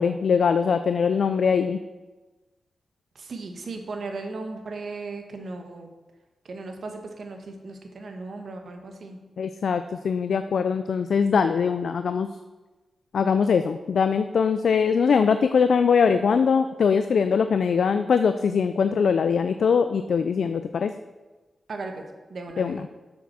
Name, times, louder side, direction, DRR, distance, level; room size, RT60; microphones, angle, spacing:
voice 1, 0.0-1.8 9.4-12.3 13.1-20.9 22.6-22.8, left 6 dB, 75° left, 9 dB, 0.3 m, -22 dB
voice 2, 3.1-5.9 6.4-9.2 21.7-21.9 22.3-22.9, right 3 dB, 70° right, 4 dB, 1.3 m, -36 dB
7.6 x 5.9 x 6.2 m, 1.2 s
cardioid pair, 70°, 0 cm